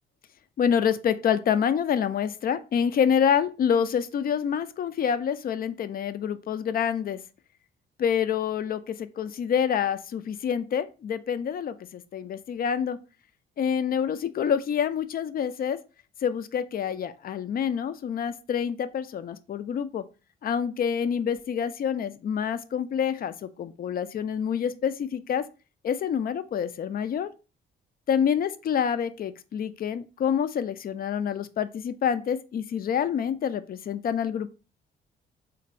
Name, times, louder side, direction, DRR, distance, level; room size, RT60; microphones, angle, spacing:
voice 1, 0.6-7.2 8.0-13.0 13.6-15.8 16.2-20.0 20.4-25.4 25.8-27.3 28.1-34.5, left 8 dB, 50° left, 0.5 m, -27 dB
3.8 x 2.6 x 4.3 m
cardioid pair, 90°, 20 cm